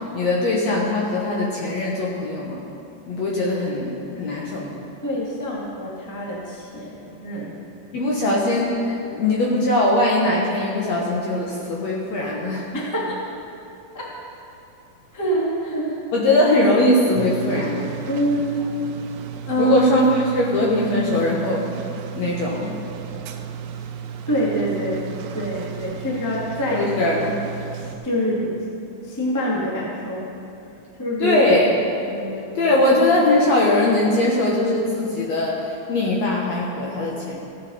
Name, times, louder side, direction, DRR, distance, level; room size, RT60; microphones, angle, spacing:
voice 1, 0.1-2.6 3.1-4.8 7.9-12.7 16.1-17.9 19.6-21.6 22.1-22.7 26.7-27.2 31.2-31.7 32.6-37.4, left 1 dB, 65° left, -3 dB, 1.8 m, -20 dB
voice 2, 5.0-7.6 12.7-13.2 13.9-14.4 15.1-16.0 18.1-18.6 19.4-19.8 24.3-25.1 25.3-26.9 27.2-27.3 27.8-28.6 29.0-30.3 31.0-31.4 32.1-32.8, equal, 15° left, -5 dB, 0.5 m, -26 dB
Kitchen Ambience dishwasher on, 17.1-28.0, right 8 dB, 85° right, 2.4 m, -34 dB
15.0 x 8.9 x 4.1 m, 2.6 s
omnidirectional pair, 4.3 m